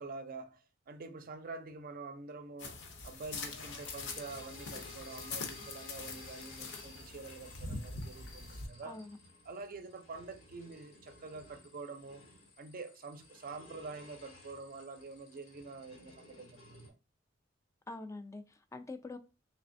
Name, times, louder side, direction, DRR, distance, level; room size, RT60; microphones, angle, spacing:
voice 1, 0.0-2.8 3.0-9.0 9.5-12.2 12.6-16.9, right 3 dB, 45° right, 0.5 m, -46 dB
sound 1, 2.6-8.7, left 3 dB, 65° left, 0.6 m, -44 dB
sound 2, 3.4-16.9, left 2 dB, 85° left, 1.0 m, -55 dB
voice 2, 8.9-9.2 17.9-19.2, left 2 dB, 15° left, 0.3 m, -45 dB
3.3 x 3.1 x 2.5 m
head